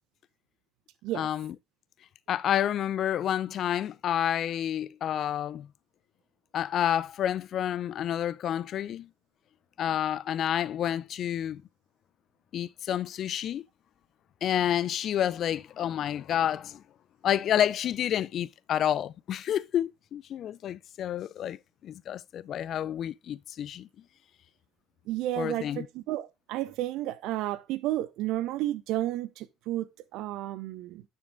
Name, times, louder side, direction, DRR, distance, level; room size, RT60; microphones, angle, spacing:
voice 1, 1.1-1.5 2.3-5.7 6.5-9.1 9.8-11.6 12.5-13.6 14.4-16.8 17.2-23.9 25.4-25.9, left 10 dB, 50° left, 0.5 m, -29 dB
voice 2, 25.1-31.0, right 15 dB, 60° right, 0.8 m, -32 dB
9.5 x 6.4 x 3.7 m
hypercardioid pair, 60°, 0 cm